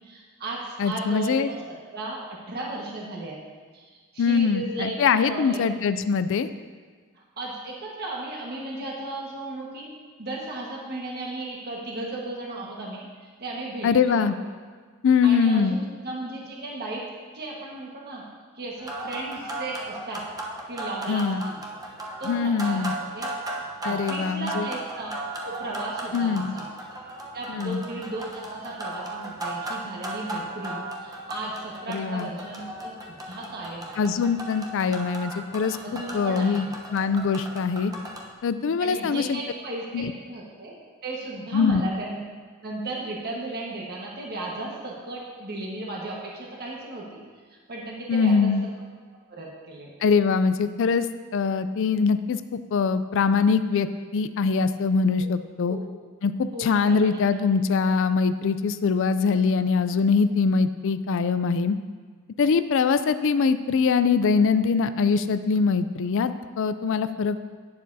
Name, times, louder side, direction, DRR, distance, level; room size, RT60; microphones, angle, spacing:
voice 1, 0.0-3.4 3.7-5.6 7.1-9.9 10.2-14.3 15.2-17.0 17.3-18.2 18.5-20.2 20.7-21.6 22.2-23.3 23.8-25.1 25.4-26.7 27.3-34.0 35.8-36.7 38.8-40.8 41.0-42.2 42.6-47.2 47.5-48.5 49.3-49.9 55.7-55.9 56.5-57.2, right 2 dB, 45° right, -3 dB, 1.5 m, -35 dB
voice 2, 0.8-1.5 4.2-6.5 13.8-14.3 15.0-15.8 21.1-21.4 22.3-22.9 23.8-24.7 26.1-26.6 27.5-27.8 31.9-32.3 34.0-36.7 36.9-37.9 38.4-39.4 39.9-40.1 41.5-41.8 48.1-48.6 50.0-51.1 51.3-53.9 54.1-55.8 56.2-61.8 62.4-67.4, left 5 dB, 60° left, 12 dB, 0.4 m, -23 dB
sound 1, 18.8-38.3, right 2 dB, 15° right, 0.9 m, -36 dB
11.0 x 9.7 x 2.8 m, 1.5 s
head